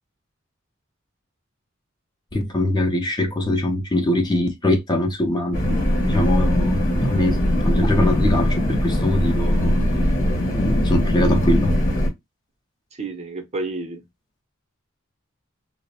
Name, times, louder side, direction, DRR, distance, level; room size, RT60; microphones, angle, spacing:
voice 1, 2.3-9.8 10.5-11.7, left 1 dB, 20° left, 0.5 m, -22 dB
sound 1, 5.5-12.1, equal, 40° left, 1.0 m, -20 dB
voice 2, 12.9-14.0, right 3 dB, 35° right, 0.6 m, -30 dB
2.5 x 2.0 x 2.7 m
head